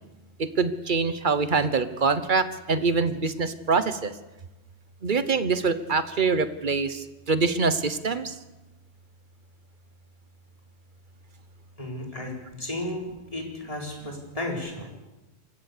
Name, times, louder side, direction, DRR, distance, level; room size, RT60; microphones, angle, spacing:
voice 1, 0.4-4.1 5.0-8.3, right 4 dB, 50° right, 13 dB, 1.1 m, -25 dB
voice 2, 11.8-14.9, left 1 dB, 30° left, 0 dB, 4.5 m, -34 dB
26.5 x 15.5 x 6.7 m, 1.1 s
omnidirectional pair, 1.1 m